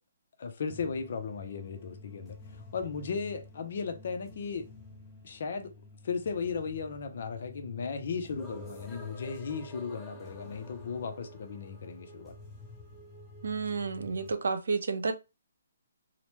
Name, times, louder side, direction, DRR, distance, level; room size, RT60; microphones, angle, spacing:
voice 1, 0.4-4.7 5.2-5.7 6.0-12.3, left 5 dB, 50° left, 0.5 m, -36 dB
sound 1, 0.7-14.3, left 2 dB, 10° left, 0.6 m, -49 dB
voice 2, 13.4-15.1, right 4 dB, 80° right, 0.6 m, -31 dB
2.9 x 2.1 x 3.1 m
hypercardioid pair, 165°, 0 cm